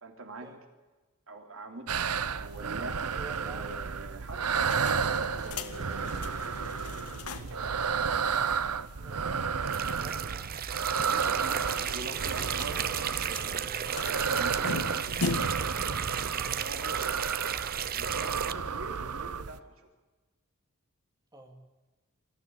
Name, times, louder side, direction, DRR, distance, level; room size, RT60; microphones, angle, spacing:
voice 1, 0.0-0.5 1.3-4.6 5.3-8.0 10.0-10.3 11.0-14.9 15.8-17.3 17.9-19.9, right 2 dB, 65° right, 4 dB, 3.1 m, -45 dB
sound 1, 1.9-19.6, right 6 dB, 90° right, 0.9 m, -32 dB
voice 2, 3.1-3.8 8.9-9.4 10.0-10.5 21.3-21.6, right 2 dB, 15° right, 2 dB, 2.7 m, -49 dB
sound 2, 4.4-7.7 8.0-8.1 8.3-8.4 11.2-15.8, left 3 dB, 90° left, 1.7 m, -39 dB
sound 3, 9.6-18.5, right 9 dB, 40° right, 0.7 m, -34 dB
21.5 x 14.5 x 10.0 m, 1.2 s
head